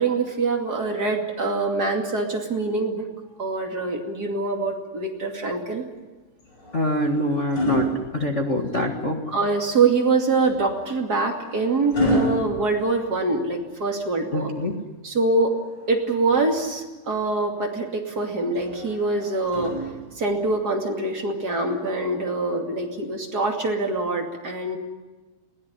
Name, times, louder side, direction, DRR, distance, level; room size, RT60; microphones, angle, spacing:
voice 1, 0.0-3.1 3.4-5.8 9.3-14.5 15.0-15.5 15.9-19.8 20.2-24.8, right 3 dB, 30° right, 1 dB, 2.4 m, -24 dB
sound 1, 6.4-8.9 10.4-13.6 15.4-16.6 18.5-20.4 21.6-21.8, right 1 dB, 25° left, 6.2 m, -30 dB
voice 2, 6.7-9.2 14.3-14.7, left 1 dB, 80° left, 1 dB, 0.6 m, -25 dB
22.0 x 17.0 x 9.8 m, 1.2 s
omnidirectional pair, 4.7 m